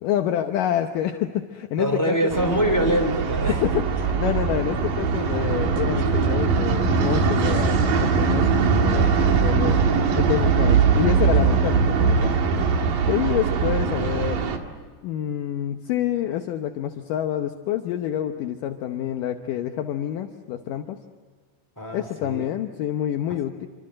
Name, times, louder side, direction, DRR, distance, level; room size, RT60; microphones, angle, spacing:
voice 1, 0.0-2.4 3.6-9.8 10.2-12.3 13.1-14.5 15.0-21.0 21.9-23.7, left 11 dB, 75° left, 6 dB, 2.0 m, -27 dB
voice 2, 1.8-3.6 9.9-10.1 21.8-22.5, equal, 5° left, 4 dB, 2.3 m, -24 dB
sound 1, 2.3-14.6, right 5 dB, 60° right, 3.3 m, -21 dB
27.0 x 25.5 x 7.7 m, 1.5 s
omnidirectional pair, 5.0 m